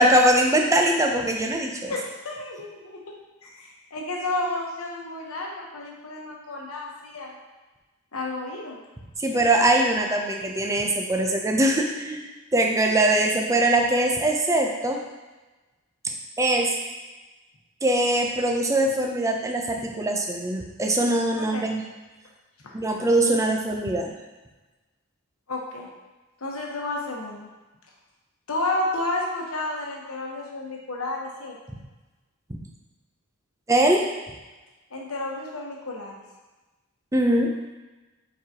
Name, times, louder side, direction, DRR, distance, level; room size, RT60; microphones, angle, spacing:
voice 1, 0.0-1.9 9.2-12.2 12.5-15.0 16.0-16.7 17.8-21.8 22.7-24.1 32.5-32.6 33.7-34.1 37.1-37.5, right 1 dB, 15° right, 2 dB, 0.6 m, -22 dB
voice 2, 1.9-3.2 3.4-7.4 8.1-8.8 21.4-21.6 22.6-22.7 25.5-25.9 26.4-27.5 28.5-31.6 34.9-36.2, left 2 dB, 65° left, -1 dB, 1.1 m, -31 dB
7.0 x 4.7 x 2.9 m, 1.2 s
head